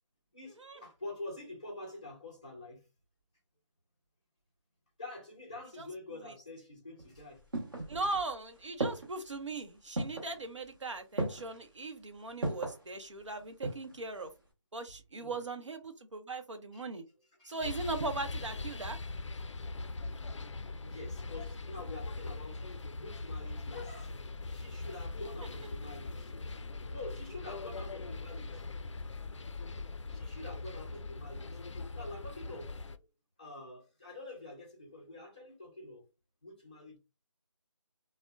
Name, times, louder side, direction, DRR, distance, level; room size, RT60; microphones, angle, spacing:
voice 1, 0.3-2.8 5.0-7.4 15.1-15.4 16.7-16.8 17.4-17.6 20.8-22.6 22.9-24.1 24.5-26.3 26.9-28.7 30.1-33.1 33.4-36.1 36.4-37.0, left 2 dB, 15° left, 0.5 m, -47 dB
sound 1, 7.0-8.3 8.8-9.3 10.0-10.4 11.2-11.6 12.4-12.8 13.4-14.0 14.3-14.4, right 2 dB, 45° right, 1.0 m, -36 dB
voice 2, 7.9-14.3 14.7-17.0 17.4-19.0, right 3 dB, 70° right, 0.7 m, -39 dB
sound 2, 17.6-33.0, left 3 dB, 70° left, 0.4 m, -41 dB
2.6 x 2.0 x 2.2 m
figure-of-eight pair, 170°, 16 cm